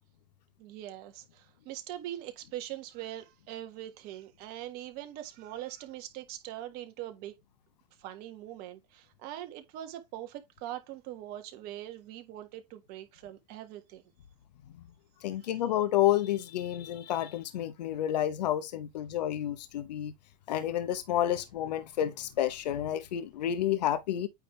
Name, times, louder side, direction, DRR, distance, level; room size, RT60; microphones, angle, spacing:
voice 1, 0.6-7.3 8.0-14.0 15.4-15.5, right 13 dB, 50° right, 1.5 m, -42 dB
voice 2, 15.2-20.1 20.5-24.3, left 12 dB, 80° left, 0.9 m, -30 dB
9.0 x 3.6 x 3.2 m
hypercardioid pair, 120°, 21 cm